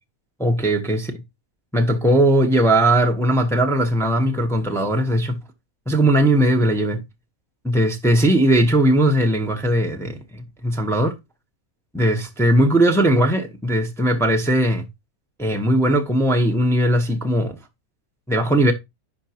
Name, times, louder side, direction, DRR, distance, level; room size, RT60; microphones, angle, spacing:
voice 1, 0.4-1.1 1.7-5.4 5.9-7.0 7.6-11.1 11.9-14.9 15.4-17.6 18.3-18.7, right 1 dB, ahead, 0.9 m, -19 dB
11.0 x 4.5 x 2.9 m
omnidirectional pair, 1.6 m